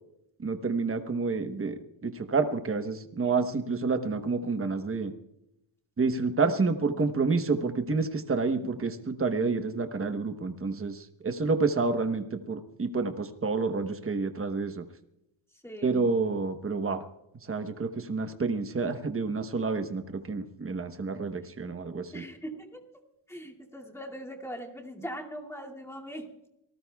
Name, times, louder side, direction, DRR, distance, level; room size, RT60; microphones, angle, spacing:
voice 1, 0.4-5.1 6.0-14.8 15.8-17.0 17.5-22.2, right 4 dB, 30° right, 7 dB, 1.0 m, -29 dB
voice 2, 15.6-16.1 22.1-22.8 23.3-26.5, equal, 5° left, -1 dB, 2.4 m, -41 dB
26.5 x 19.0 x 2.3 m, 0.83 s
wide cardioid pair, 145°, 46 cm